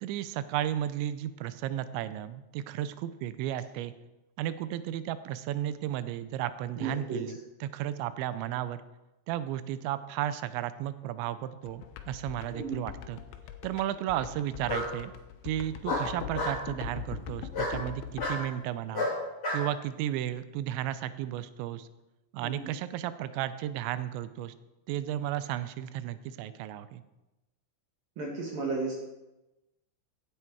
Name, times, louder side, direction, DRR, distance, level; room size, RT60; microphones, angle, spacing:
voice 1, 0.0-3.9 4.4-8.8 9.3-13.2 13.6-15.1 15.4-19.1 19.5-21.9 22.3-24.5 24.9-27.0, right 12 dB, 80° right, 13 dB, 2.6 m, -34 dB
voice 2, 6.8-7.2 12.5-12.8 22.4-22.5 28.2-29.0, right 4 dB, 55° right, -1 dB, 2.9 m, -33 dB
sound 1, 11.7-18.4, left 9 dB, 80° left, 3.1 m, -40 dB
Bark, 12.5-13.1 14.7-14.9 15.8-16.6 17.5-17.8 18.2-18.4 18.9-19.6, left 2 dB, 25° left, 2.9 m, -31 dB
16.5 x 9.7 x 4.7 m, 1.0 s
omnidirectional pair, 5.8 m